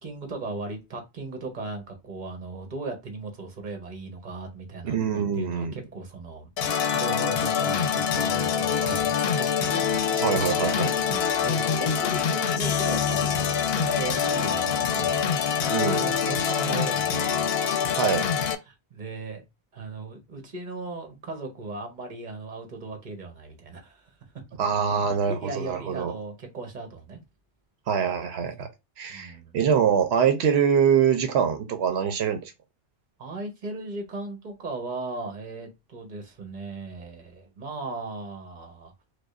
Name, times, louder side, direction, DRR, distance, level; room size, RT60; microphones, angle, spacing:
voice 1, 0.0-6.5 6.9-9.8 10.8-15.3 15.9-17.5 17.8-18.0 18.6-19.4 19.7-24.1 25.1-27.2 29.1-29.5 33.2-38.9, right 3 dB, 50° right, 1.1 m, -37 dB
voice 2, 4.8-5.7 10.0-10.9 15.6-16.1 18.0-18.3 24.6-26.1 27.9-28.7 29.0-32.5, right 7 dB, 85° right, 0.9 m, -24 dB
sound 1, 6.6-18.6, left 7 dB, 75° left, 0.8 m, -25 dB
4.8 x 2.2 x 2.4 m
omnidirectional pair, 1.1 m